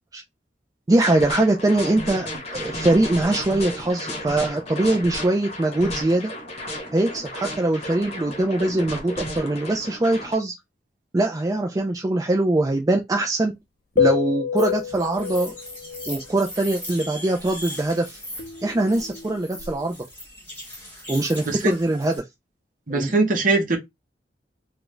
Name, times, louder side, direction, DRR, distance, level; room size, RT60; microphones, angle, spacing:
voice 1, 0.9-6.3 6.9-10.5 11.1-13.5 14.0-15.6 16.1-18.2 18.6-20.0 21.1-22.1 22.9-23.1, right 2 dB, 20° right, 0.4 m, -22 dB
sound 1, 1.0-10.4, left 1 dB, 40° left, 1.1 m, -33 dB
sound 2, 14.0-16.2 18.4-19.9, left 7 dB, 55° left, 0.5 m, -27 dB
sound 3, 14.6-22.2, equal, 15° left, 2.2 m, -39 dB
voice 2, 22.9-23.8, right 3 dB, 50° right, 1.0 m, -21 dB
3.2 x 2.5 x 3.1 m
head